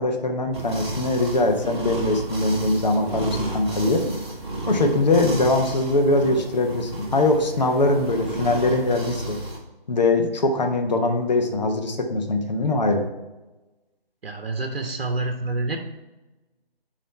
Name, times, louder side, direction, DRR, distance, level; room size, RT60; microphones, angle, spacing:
voice 1, 0.0-4.0 4.7-9.4 9.9-13.0, left 2 dB, 45° left, 4 dB, 1.0 m, -22 dB
sound 1, 0.5-9.6, right 2 dB, 25° right, 1.9 m, -32 dB
voice 2, 14.2-15.8, right 2 dB, 70° right, 5 dB, 1.1 m, -27 dB
9.4 x 3.2 x 4.5 m, 1.1 s
figure-of-eight pair, 165°, 30 cm